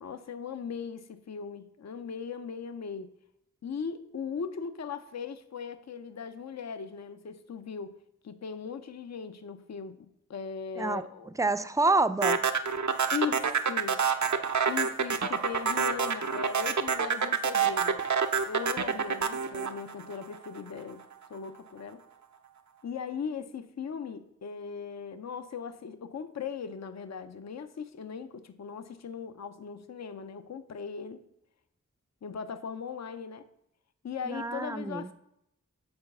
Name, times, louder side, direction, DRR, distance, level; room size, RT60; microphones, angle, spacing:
voice 1, 0.0-3.1 3.6-7.9 8.2-11.3 13.1-14.0 14.3-18.0 18.5-21.0 21.3-22.0 22.8-31.2 32.2-33.4 34.0-35.1, left 6 dB, 55° left, 11 dB, 0.5 m, -38 dB
voice 2, 11.4-12.4 34.2-35.1, right 3 dB, 10° right, 13 dB, 0.4 m, -27 dB
sound 1, 12.2-20.6, right 6 dB, 65° right, 0.6 m, -27 dB
7.1 x 3.9 x 6.5 m, 0.79 s
wide cardioid pair, 60°, 32 cm